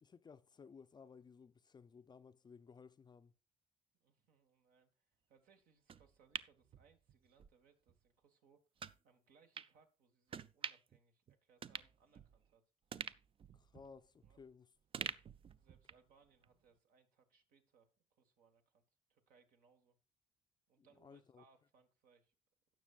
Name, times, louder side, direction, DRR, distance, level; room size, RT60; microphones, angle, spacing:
voice 1, 0.0-3.3 13.5-14.7 15.0-15.2 20.8-21.4, left 5 dB, 30° left, 0.4 m, -59 dB
voice 2, 4.0-8.6 9.0-12.6 14.2-14.4 15.5-18.8 19.1-20.0 20.7-22.3, right 5 dB, 75° right, 1.5 m, -71 dB
sound 1, 5.9-7.5 7.9-8.0 8.8-9.0 9.5-9.7 10.3-11.0 11.3-11.4 11.6-12.5 12.9-14.5 14.9-16.1 16.4-16.5, right 7 dB, 40° right, 0.4 m, -47 dB
17.0 x 6.0 x 2.4 m
cardioid pair, 85°, 15 cm